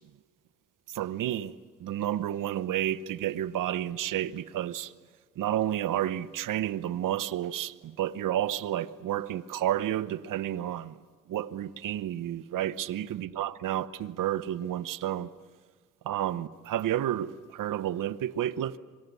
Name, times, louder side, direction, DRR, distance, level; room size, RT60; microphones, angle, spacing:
voice 1, 0.9-1.5 1.8-4.9 5.4-11.0 11.3-15.3 16.0-18.8, right 12 dB, 85° right, 0.9 m, -31 dB
25.5 x 24.5 x 8.2 m
cardioid pair, 60°, 31 cm